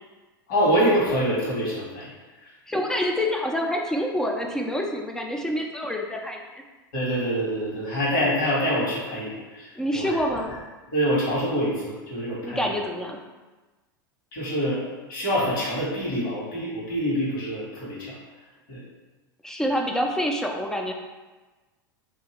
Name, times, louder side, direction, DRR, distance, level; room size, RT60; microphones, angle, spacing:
voice 1, 0.5-2.1 2.4-2.5 6.9-10.4 10.9-12.7 14.3-18.1 18.7-18.8, equal, 60° left, -6 dB, 1.3 m, -26 dB
voice 2, 2.7-6.4 9.8-10.5 12.4-13.2 19.4-20.9, equal, 5° left, 1 dB, 0.4 m, -27 dB
2.6 x 2.5 x 2.9 m, 1.2 s
hypercardioid pair, 90°, 12 cm